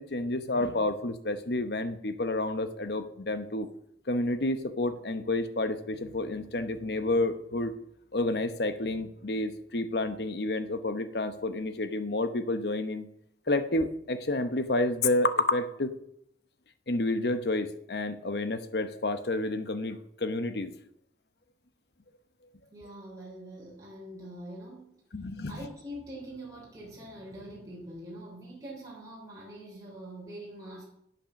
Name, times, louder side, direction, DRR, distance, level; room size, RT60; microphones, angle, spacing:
voice 1, 0.0-3.7 4.1-7.7 8.1-13.1 13.5-15.9 16.9-20.7 25.1-25.5, left 2 dB, 70° left, 10 dB, 0.9 m, -30 dB
voice 2, 22.7-25.0 25.5-30.8, right 1 dB, 20° right, -5 dB, 3.5 m, -44 dB
9.1 x 8.9 x 6.4 m, 0.73 s
head